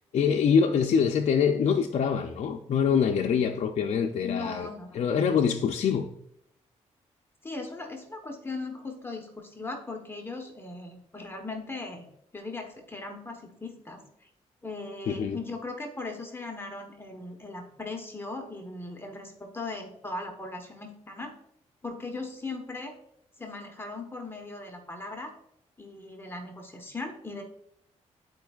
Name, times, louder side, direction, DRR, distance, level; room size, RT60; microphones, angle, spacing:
voice 1, 0.0-4.7 4.9-6.1 15.1-15.4, left 6 dB, 65° left, 2 dB, 0.5 m, -25 dB
voice 2, 4.2-5.0 7.4-12.1 12.3-14.0 14.6-21.3 21.8-22.9 23.4-25.3 25.8-27.4, left 3 dB, 20° left, 2 dB, 1.1 m, -38 dB
11.5 x 4.5 x 2.4 m, 0.73 s
cardioid pair, 100°, 12 cm